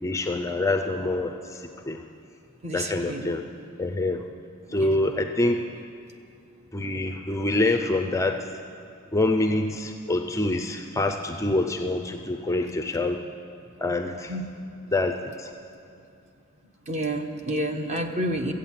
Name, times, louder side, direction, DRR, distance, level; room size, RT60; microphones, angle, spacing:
voice 1, 0.0-2.0 2.7-3.4 3.8-4.2 4.7-5.6 6.7-8.5 9.1-13.2 13.8-14.4 14.9-15.5, left 2 dB, 15° left, 5 dB, 0.4 m, -26 dB
voice 2, 2.6-3.3 14.3-14.4 16.9-18.5, right 1 dB, 30° right, 4 dB, 1.0 m, -29 dB
14.5 x 8.4 x 7.4 m, 2.5 s
head